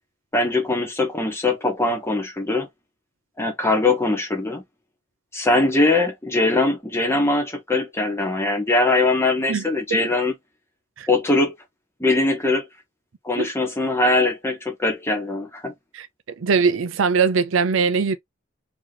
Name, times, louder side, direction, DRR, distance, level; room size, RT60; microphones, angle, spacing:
voice 1, 0.3-2.7 3.4-4.6 5.3-10.3 11.1-11.5 12.0-12.6 13.2-15.7, left 2 dB, 15° left, 1.0 m, -21 dB
voice 2, 16.4-18.2, right 5 dB, 80° right, 0.5 m, -20 dB
3.0 x 2.9 x 3.8 m
head